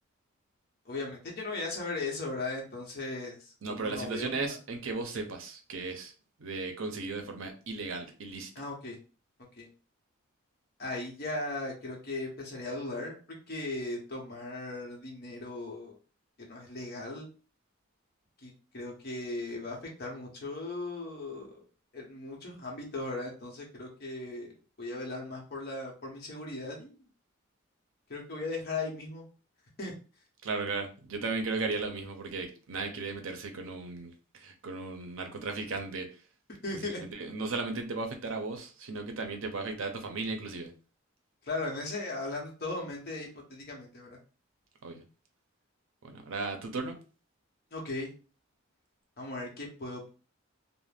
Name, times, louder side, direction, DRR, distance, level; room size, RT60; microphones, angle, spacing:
voice 1, 0.9-4.5 8.5-9.0 9.6-9.7 10.8-13.2 13.5-15.9 16.4-17.3 18.4-21.5 21.9-24.5 24.8-27.0 28.1-29.2 29.8-29.9 36.6-37.0 41.5-44.2 47.7-48.1 49.2-50.1, left 2 dB, 50° left, -1 dB, 0.9 m, -37 dB
voice 2, 3.6-6.1 6.4-8.5 30.4-36.1 36.7-40.7 44.8-45.0 46.0-47.0, right 3 dB, 70° right, 4 dB, 0.6 m, -36 dB
2.5 x 2.1 x 3.3 m, 0.36 s
head